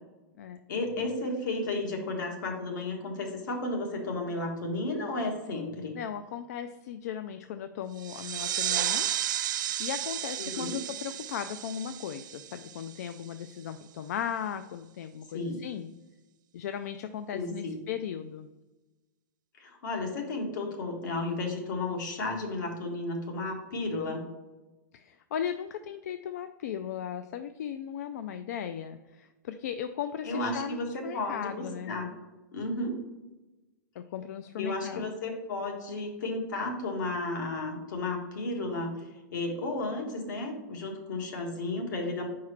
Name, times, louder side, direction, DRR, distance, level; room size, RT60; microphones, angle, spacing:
voice 1, 0.7-6.0 10.4-10.8 15.3-15.6 17.3-17.8 19.6-24.3 30.2-32.1 32.5-33.0 34.6-39.0 39.3-42.3, left 2 dB, 75° left, 1 dB, 1.7 m, -33 dB
voice 2, 6.0-9.1 9.5-15.9 16.5-18.5 24.9-31.9 34.0-35.1, left 9 dB, 55° left, 9 dB, 0.4 m, -37 dB
sound 1, 8.0-13.3, right 11 dB, 80° right, 0.4 m, -33 dB
4.8 x 4.7 x 5.7 m, 1.1 s
supercardioid pair, 165°, 10 cm